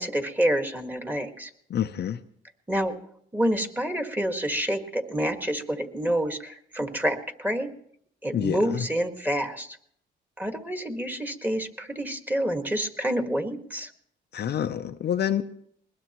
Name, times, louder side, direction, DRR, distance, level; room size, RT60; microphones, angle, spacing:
voice 1, 0.0-1.5 2.7-3.0 3.3-7.7 8.2-9.8 10.4-13.9, right 1 dB, 10° right, 1.8 m, -28 dB
voice 2, 1.7-2.2 8.3-8.8 14.3-15.4, left 9 dB, 55° left, 0.7 m, -27 dB
21.0 x 21.0 x 3.0 m
cardioid pair, 90°, 20 cm